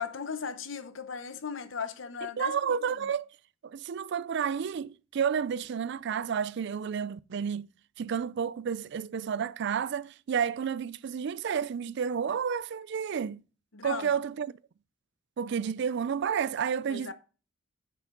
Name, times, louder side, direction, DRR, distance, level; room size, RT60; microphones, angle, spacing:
voice 1, 0.0-3.1 13.7-14.1 16.8-17.1, left 6 dB, 70° left, 0.9 m, -37 dB
voice 2, 2.4-3.3 3.6-7.7 8.0-13.4 13.8-14.5 15.4-17.1, right 7 dB, 60° right, 0.4 m, -31 dB
9.1 x 5.6 x 3.8 m
head